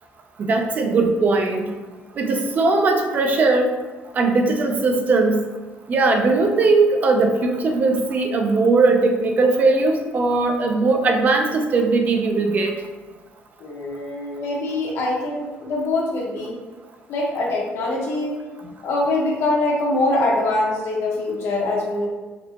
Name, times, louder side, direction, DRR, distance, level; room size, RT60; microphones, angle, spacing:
voice 1, 0.4-1.7 2.2-3.7 4.1-5.4 5.9-12.7, right 3 dB, 40° right, 3 dB, 0.5 m, -19 dB
voice 2, 13.6-16.6 17.1-18.4 18.8-22.1, left 2 dB, 70° left, -2 dB, 1.2 m, -23 dB
4.3 x 4.1 x 2.9 m, 1.3 s
cardioid pair, 155°, 4 cm